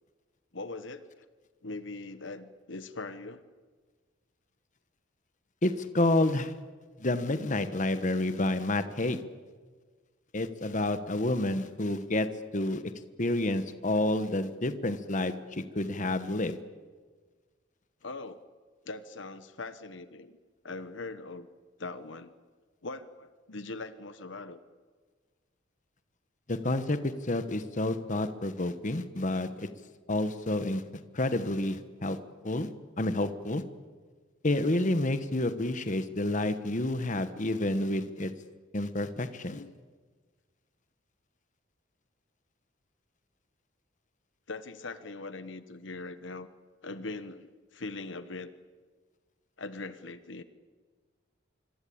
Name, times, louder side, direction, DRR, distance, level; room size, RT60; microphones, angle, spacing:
voice 1, 0.5-1.3 1.6-3.4 18.0-18.4 18.9-20.4 20.6-21.5 21.8-22.3 22.8-24.6 39.5-39.7 44.5-46.5 46.8-48.5 49.6-50.4, left 3 dB, 65° left, 12 dB, 1.2 m, -41 dB
voice 2, 5.6-6.5 7.0-9.2 10.3-12.3 12.5-12.8 13.2-16.6 26.5-27.0 27.3-29.7 30.1-30.8 31.1-32.2 32.4-32.7 33.0-33.6 34.4-38.3 38.7-39.6, left 1 dB, 40° left, 11 dB, 1.3 m, -29 dB
26.0 x 24.5 x 8.7 m, 1.5 s
head